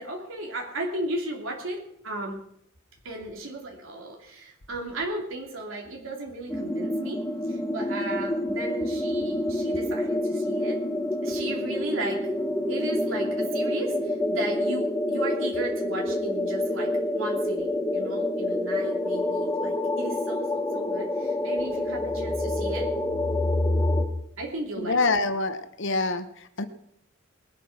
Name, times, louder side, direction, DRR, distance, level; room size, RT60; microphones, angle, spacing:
voice 1, 0.0-2.4 3.0-7.2 7.5-10.8 11.2-12.3 12.7-22.9 24.4-25.0, right 2 dB, 75° right, -1 dB, 3.1 m, -35 dB
sound 1, 6.5-24.1, left 1 dB, 15° left, 1.4 m, -27 dB
voice 2, 24.8-26.6, left 3 dB, 65° left, 9 dB, 1.1 m, -26 dB
21.0 x 8.8 x 6.0 m, 0.72 s
head